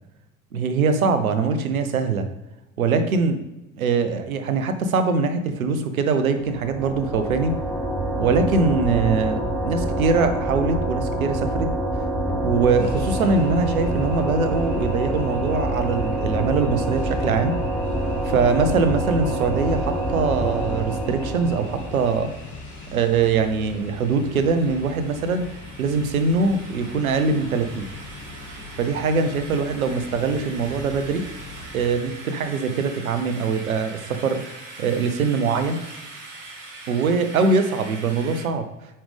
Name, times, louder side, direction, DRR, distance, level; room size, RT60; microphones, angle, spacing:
voice 1, 0.5-2.3 2.8-3.4 3.8-7.5 8.2-11.7 12.4-17.5 18.2-22.3 22.9-25.5 25.8-27.9 28.8-31.2 31.7-34.4 34.8-35.8 36.9-38.7, right 4 dB, 85° right, 9 dB, 0.9 m, -22 dB
sound 1, 6.4-22.2, right 1 dB, ahead, 1.6 m, -26 dB
sound 2, 12.8-31.9, left 2 dB, 45° left, 2.0 m, -40 dB
sound 3, 21.5-38.5, right 2 dB, 45° right, 2.5 m, -42 dB
8.7 x 5.4 x 3.4 m, 0.96 s
hypercardioid pair, 65°, 41 cm